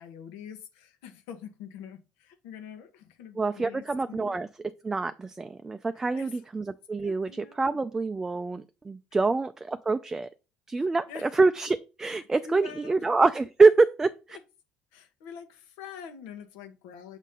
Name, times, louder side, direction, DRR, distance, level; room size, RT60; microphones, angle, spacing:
voice 1, 0.0-4.4 5.9-6.5 7.0-7.8 9.2-9.3 11.1-11.3 12.4-13.1 14.3-14.4 14.9-17.2, left 7 dB, 90° left, 1.2 m, -45 dB
voice 2, 3.4-4.5 4.8-10.3 10.7-14.4, right 3 dB, 15° right, 0.4 m, -25 dB
7.1 x 4.2 x 3.7 m
cardioid pair, 115°, 3 cm